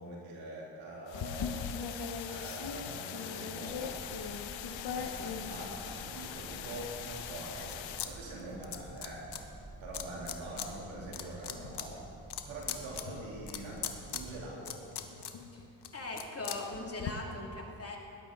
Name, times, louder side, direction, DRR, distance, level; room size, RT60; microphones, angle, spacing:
voice 1, 0.0-4.0 4.7-9.3 9.8-12.0 12.5-13.9 14.1-14.9, right 1 dB, 90° right, -4 dB, 3.2 m, -44 dB
sound 1, 1.1-8.0, left 10 dB, 80° left, 0.9 m, -43 dB
sound 2, 1.1-6.2 6.7-8.1 8.3-9.4 9.9-10.7 11.0-17.1, left 7 dB, 60° left, 1.2 m, -41 dB
sound 3, 3.7-14.5, right 2 dB, 10° right, 0.7 m, -51 dB
voice 2, 15.9-18.0, left 2 dB, 30° left, -1 dB, 2.7 m, -40 dB
17.0 x 12.0 x 4.0 m, 2.8 s
supercardioid pair, 60°, 46 cm